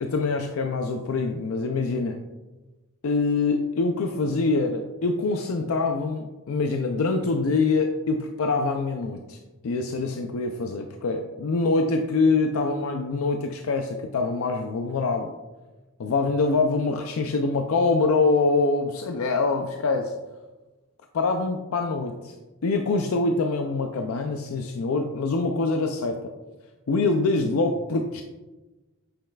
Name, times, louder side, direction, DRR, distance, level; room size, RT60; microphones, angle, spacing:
voice 1, 0.0-2.2 3.0-15.3 16.0-20.1 21.1-22.3 22.6-26.2 26.9-28.2, left 3 dB, 85° left, 5 dB, 0.4 m, -24 dB
8.6 x 5.5 x 2.3 m, 1.2 s
head